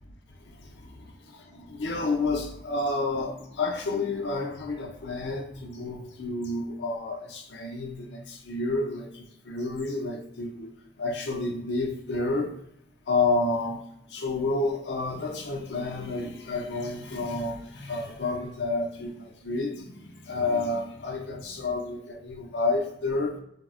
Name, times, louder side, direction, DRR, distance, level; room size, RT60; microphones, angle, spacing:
voice 1, 0.5-10.7 11.0-12.5 13.1-13.8 14.1-23.4, left 3 dB, 80° left, 2 dB, 0.5 m, -30 dB
3.5 x 2.0 x 2.4 m, 0.73 s
head